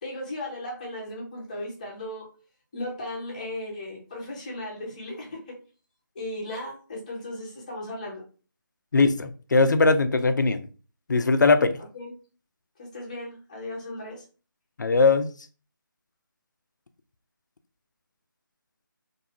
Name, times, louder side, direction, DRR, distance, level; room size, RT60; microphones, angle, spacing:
voice 1, 0.0-2.3 2.7-5.6 6.1-8.2 11.9-12.2 12.8-14.2, left 1 dB, 20° left, 0.7 m, -36 dB
voice 2, 8.9-10.7 11.1-11.8 14.8-15.3, left 3 dB, 60° left, 0.4 m, -20 dB
2.5 x 2.3 x 2.9 m
figure-of-eight pair, 160°, 11 cm